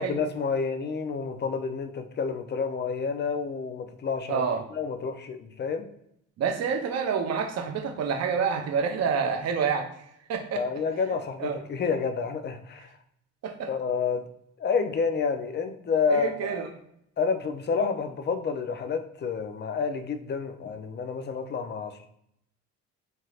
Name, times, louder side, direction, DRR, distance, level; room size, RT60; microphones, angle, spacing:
voice 1, 0.0-4.4 4.7-5.9 10.6-12.9 13.7-14.3 14.6-16.6 17.2-22.1, left 5 dB, 35° left, 7 dB, 0.4 m, -29 dB
voice 2, 4.3-4.6 6.4-9.9 10.3-10.6 11.4-11.6 13.4-13.7 16.1-16.7, right 6 dB, 60° right, 5 dB, 0.6 m, -28 dB
3.3 x 2.8 x 2.4 m, 0.74 s
cardioid pair, 90°, 30 cm